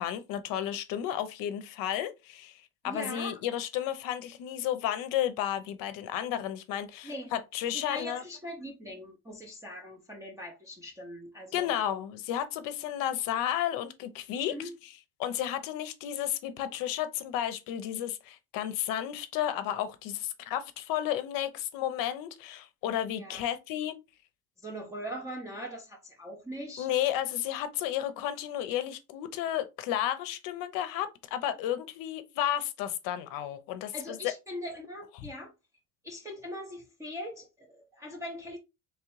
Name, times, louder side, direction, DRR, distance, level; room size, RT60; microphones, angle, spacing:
voice 1, 0.0-8.2 11.5-14.5 15.2-24.0 26.8-34.3, left 11 dB, 65° left, 0.6 m, -32 dB
voice 2, 2.8-3.4 7.0-7.3 7.7-11.7 14.5-14.7 23.2-23.4 24.6-26.9 33.9-35.5 36.0-38.6, equal, 10° right, 0.5 m, -41 dB
3.6 x 3.1 x 3.0 m
cardioid pair, 145°, 37 cm